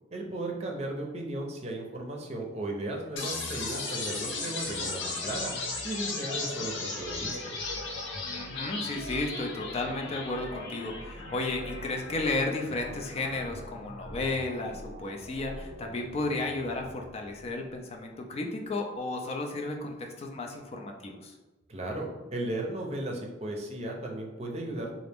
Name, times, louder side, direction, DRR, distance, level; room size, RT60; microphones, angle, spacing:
voice 1, 0.1-5.5 5.8-7.5 21.7-24.9, right 1 dB, 35° right, 0 dB, 0.6 m, -35 dB
sound 1, 3.2-17.1, left 3 dB, 80° left, 0.8 m, -37 dB
voice 2, 8.3-21.3, left 2 dB, 35° left, 2 dB, 0.4 m, -33 dB
3.9 x 2.5 x 3.4 m, 1.1 s
head